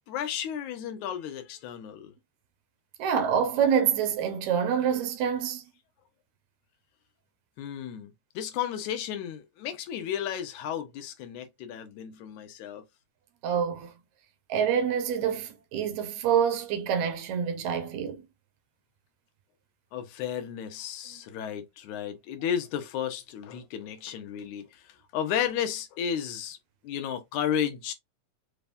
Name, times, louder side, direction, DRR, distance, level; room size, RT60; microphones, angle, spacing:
voice 1, 0.1-2.1 7.6-8.1 8.4-12.8 19.9-24.8 25.1-26.6 26.8-27.9, left 9 dB, 85° left, 2.3 m, -33 dB
voice 2, 3.0-5.6 13.4-13.9 14.5-18.2, right 8 dB, 80° right, 2.1 m, -26 dB
5.3 x 3.4 x 2.5 m
omnidirectional pair, 3.4 m